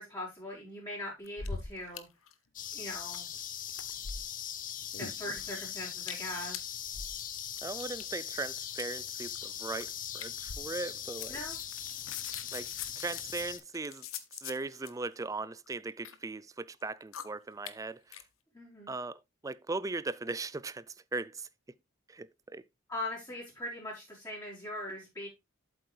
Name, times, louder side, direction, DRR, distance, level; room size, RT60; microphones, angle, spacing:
voice 1, 0.0-2.1 2.7-3.3 4.9-6.6 11.3-11.6 18.5-19.0 22.9-25.3, left 1 dB, 20° left, 4.3 m, -40 dB
sound 1, 1.2-2.0 2.3-2.4 2.6-3.4 3.7-4.5 4.9-5.6 6.0-6.3 6.5-8.0 8.7-8.8 9.2-9.4 9.8-9.9 10.2-10.9 11.2-14.9 15.7-16.1 16.7-16.8 17.1-17.2 17.7-17.8 18.1-18.2, left 6 dB, 90° left, 0.9 m, -42 dB
sound 2, 2.5-13.6, left 10 dB, 40° left, 0.8 m, -40 dB
voice 2, 7.6-11.4 12.5-12.7 13.0-14.1 14.4-18.2 18.9-21.5 22.1-22.6, right 3 dB, 15° right, 0.4 m, -38 dB
8.0 x 7.8 x 3.2 m
head